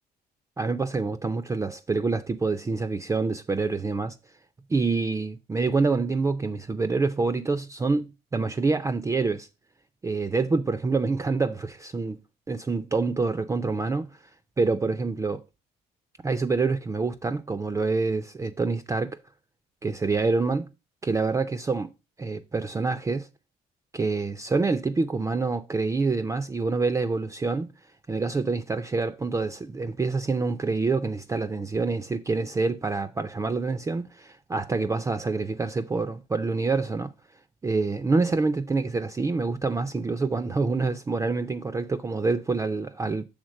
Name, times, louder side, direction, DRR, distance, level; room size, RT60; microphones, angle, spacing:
voice 1, 0.6-4.2 4.7-8.1 8.3-9.5 10.0-12.2 12.5-14.1 14.6-15.4 16.2-19.2 19.8-20.7 21.0-21.9 22.2-23.3 23.9-27.7 28.1-37.1 37.6-43.2, right 3 dB, 15° right, 0.4 m, -26 dB
6.5 x 3.6 x 6.1 m
cardioid pair, 110°, 17 cm